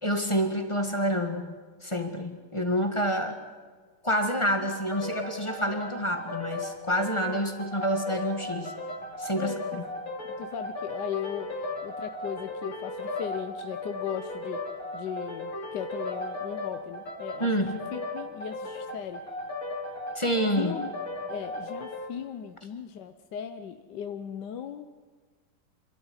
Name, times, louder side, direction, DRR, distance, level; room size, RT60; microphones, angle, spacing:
voice 1, 0.0-1.5 1.8-3.4 4.0-8.7 9.2-9.8 17.4-17.8 20.1-20.8, equal, 15° left, 5 dB, 1.6 m, -28 dB
sound 1, 4.7-22.1, left 2 dB, 40° left, 3.3 m, -36 dB
voice 2, 9.4-9.8 10.4-14.6 14.9-17.5 17.9-19.2 20.6-20.9 21.3-24.9, left 8 dB, 65° left, 8 dB, 1.3 m, -37 dB
27.0 x 13.0 x 9.7 m, 1.5 s
omnidirectional pair, 2.3 m